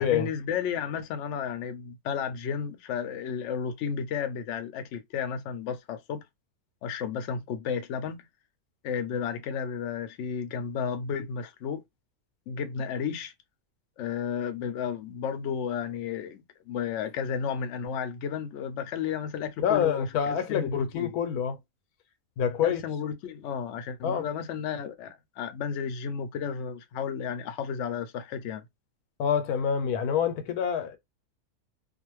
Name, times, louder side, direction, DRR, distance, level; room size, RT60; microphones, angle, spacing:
voice 1, 0.0-6.2 6.8-8.2 8.8-11.8 12.5-13.3 14.0-21.1 22.6-28.6, left 7 dB, 65° left, 0.8 m, -33 dB
voice 2, 19.6-21.6 22.4-22.8 24.0-24.3 29.2-31.0, left 8 dB, 90° left, 1.1 m, -26 dB
2.5 x 2.4 x 3.0 m
omnidirectional pair, 1.5 m